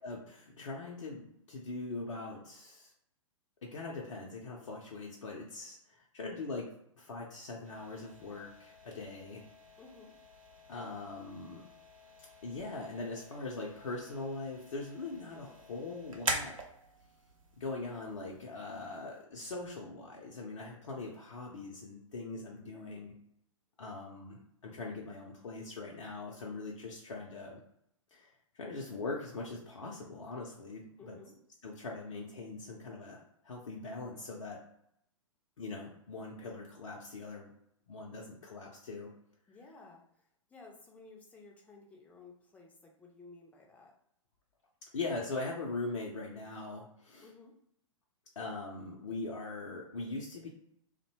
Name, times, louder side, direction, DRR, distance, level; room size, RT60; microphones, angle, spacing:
voice 1, 0.0-1.2 1.5-2.9 3.6-6.7 7.0-9.4 10.7-11.6 12.4-16.5 17.6-23.1 23.8-27.6 28.1-31.2 31.6-34.6 35.6-37.5 37.9-39.1 44.9-47.3 48.4-50.5, left 3 dB, 65° left, -2 dB, 0.5 m, -41 dB
sound 1, 7.6-19.2, right 2 dB, 80° right, 0.6 m, -45 dB
voice 2, 9.8-10.2 22.7-23.1 31.0-31.4 39.5-40.0 40.5-43.9 47.2-47.6, left 3 dB, 10° left, 0 dB, 0.4 m, -55 dB
2.6 x 2.1 x 2.8 m, 0.75 s
figure-of-eight pair, 110°, 17 cm